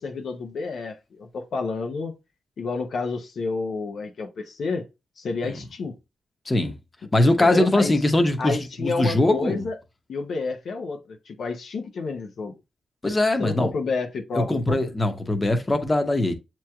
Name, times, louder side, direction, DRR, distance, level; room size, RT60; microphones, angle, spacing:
voice 1, 0.0-2.1 2.6-4.8 5.2-6.0 7.4-7.9 8.4-9.8 10.1-12.6 13.4-14.8, left 4 dB, 70° left, 0.7 m, -30 dB
voice 2, 7.1-9.7 13.0-13.7 14.3-16.3, left 1 dB, 25° left, 0.9 m, -21 dB
7.3 x 3.0 x 2.3 m
cardioid pair, 60°, 0 cm